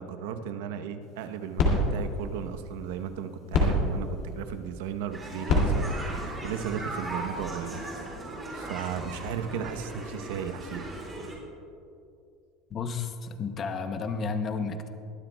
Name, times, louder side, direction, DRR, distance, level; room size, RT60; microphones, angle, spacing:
voice 1, 0.0-7.8 8.5-10.9, right 8 dB, 85° right, 8 dB, 0.9 m, -35 dB
sound 1, 1.0-7.4, left 2 dB, 45° left, 2.5 m, -30 dB
sound 2, 5.1-11.3, right 2 dB, 15° right, 3.5 m, -38 dB
voice 2, 12.7-14.9, left 4 dB, 25° left, 7 dB, 0.7 m, -32 dB
22.0 x 12.0 x 2.3 m, 2.5 s
cardioid pair, 170°, 0 cm